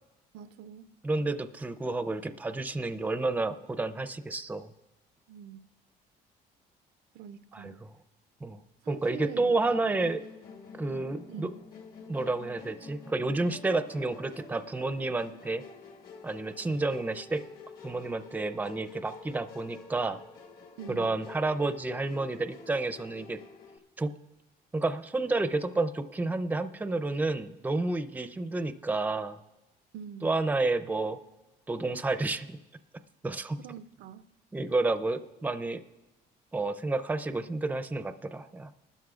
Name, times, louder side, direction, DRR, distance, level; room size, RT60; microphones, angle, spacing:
voice 1, 0.3-0.9 5.3-5.6 7.1-7.8 8.8-9.5 11.3-11.6 20.8-21.1 29.9-30.3 33.6-34.3, right 8 dB, 75° right, 0.5 m, -44 dB
voice 2, 1.0-4.7 7.5-7.9 8.4-8.6 8.9-10.2 10.7-11.5 12.1-15.6 16.2-17.4 17.8-20.2 20.9-23.4 24.0-24.1 24.7-29.4 30.2-31.2 31.7-32.6 33.2-33.6 34.5-35.8 36.5-38.7, right 2 dB, 10° right, 0.5 m, -30 dB
Musical instrument, 10.0-23.8, left 4 dB, 60° left, 1.8 m, -49 dB
29.5 x 12.5 x 2.4 m
cardioid pair, 110°, 17 cm